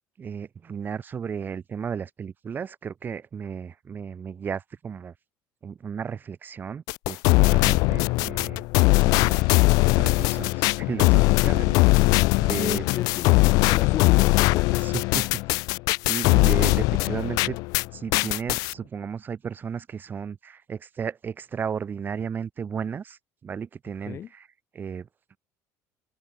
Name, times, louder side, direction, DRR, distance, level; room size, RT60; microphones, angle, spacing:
voice 1, 0.2-5.1 5.6-8.6 9.0-9.5 9.9-11.8 12.4-12.8 15.1-15.2 16.1-17.6 17.9-24.5 24.7-25.1, right 7 dB, 30° right, 3.9 m, -34 dB
sound 1, 6.9-17.9 18.1-18.7, left 24 dB, 80° left, 0.5 m, -20 dB
voice 2, 12.5-15.1 24.1-24.3, left 9 dB, 40° left, 3.7 m, -34 dB
cardioid pair, 135°, 6 cm